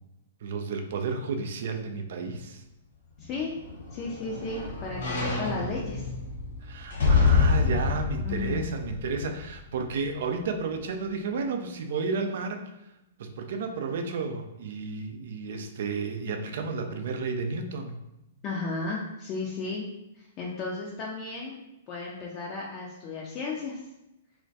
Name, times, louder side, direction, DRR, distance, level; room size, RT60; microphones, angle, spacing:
voice 1, 0.4-2.6 6.6-12.6 13.2-18.0, right 4 dB, 60° right, 5 dB, 0.3 m, -32 dB
voice 2, 3.2-3.5 3.9-6.1 8.2-8.7 18.4-19.9 20.2-21.6 21.9-23.8, left 3 dB, 35° left, -4 dB, 0.4 m, -34 dB
sound 1, 3.3-9.6 10.1-10.2, left 5 dB, 65° left, 0.8 m, -27 dB
2.2 x 2.1 x 2.7 m, 0.89 s
figure-of-eight pair, 115°, 0 cm